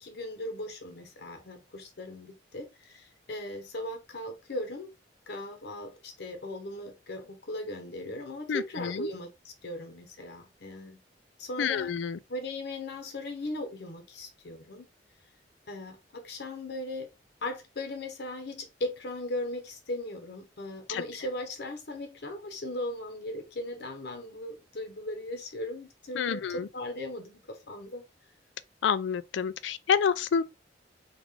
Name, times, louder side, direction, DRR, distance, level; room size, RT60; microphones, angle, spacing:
voice 1, 0.0-4.9 5.3-11.0 11.4-11.9 12.3-14.9 15.7-17.1 17.4-28.0, left 1 dB, 65° left, 0.9 m, -38 dB
voice 2, 8.5-9.1 11.6-12.2 20.9-21.0 26.1-26.7 28.8-30.4, left 7 dB, 80° left, 0.4 m, -28 dB
3.7 x 2.4 x 3.2 m
head